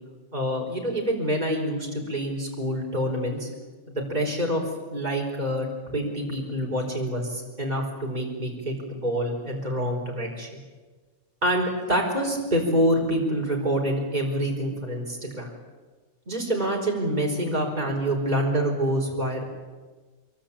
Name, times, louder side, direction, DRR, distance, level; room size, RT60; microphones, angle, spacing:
voice 1, 0.3-3.5 3.9-4.6 4.9-10.6 11.4-15.5 16.3-19.4, equal, 30° right, 1 dB, 5.0 m, -26 dB
26.0 x 23.0 x 8.8 m, 1.3 s
omnidirectional pair, 1.4 m